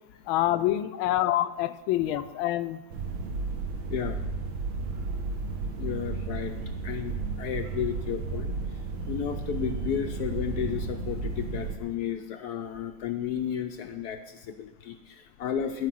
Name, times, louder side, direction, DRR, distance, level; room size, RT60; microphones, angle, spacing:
voice 1, 0.3-2.8, left 14 dB, 85° left, 12 dB, 1.4 m, -26 dB
sound 1, 2.9-11.8, right 4 dB, 75° right, 1.6 m, -33 dB
voice 2, 3.8-4.2 5.8-6.6 6.8-8.6 9.1-15.9, left 8 dB, 70° left, 7 dB, 1.0 m, -33 dB
13.0 x 5.2 x 7.6 m, 1.1 s
omnidirectional pair, 2.2 m